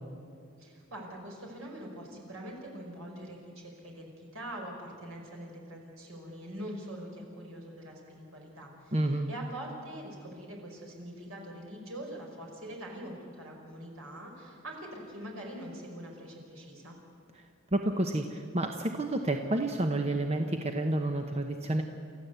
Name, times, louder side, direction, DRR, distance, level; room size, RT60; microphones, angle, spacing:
voice 1, 0.6-9.0 9.3-17.0, right 1 dB, 75° right, 0 dB, 5.4 m, -43 dB
voice 2, 8.9-9.3 17.7-21.8, right 1 dB, 30° right, 4 dB, 1.0 m, -29 dB
29.0 x 14.0 x 8.2 m, 2.4 s
head